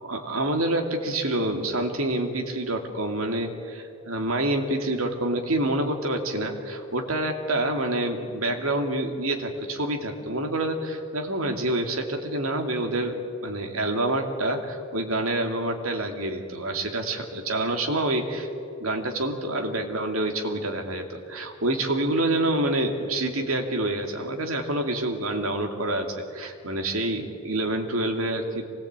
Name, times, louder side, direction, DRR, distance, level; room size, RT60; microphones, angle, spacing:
voice 1, 0.0-18.5 18.8-28.7, right 1 dB, 75° right, 4 dB, 2.6 m, -27 dB
24.5 x 18.5 x 8.9 m, 2.4 s
head